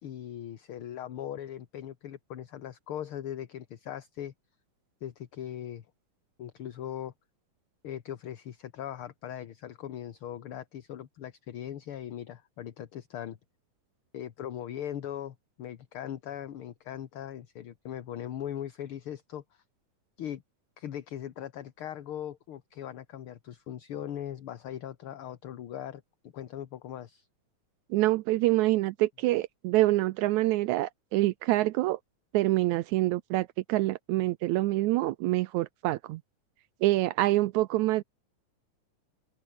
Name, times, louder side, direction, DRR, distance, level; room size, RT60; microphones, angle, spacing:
voice 1, 0.0-4.3 5.0-5.9 6.4-7.1 7.8-13.4 14.1-19.6 20.2-20.4 20.8-27.3, left 10 dB, 55° left, 1.8 m, -40 dB
voice 2, 27.9-32.0 32.3-36.2 36.8-38.0, right 17 dB, 80° right, 1.9 m, -26 dB
omnidirectional pair, 3.6 m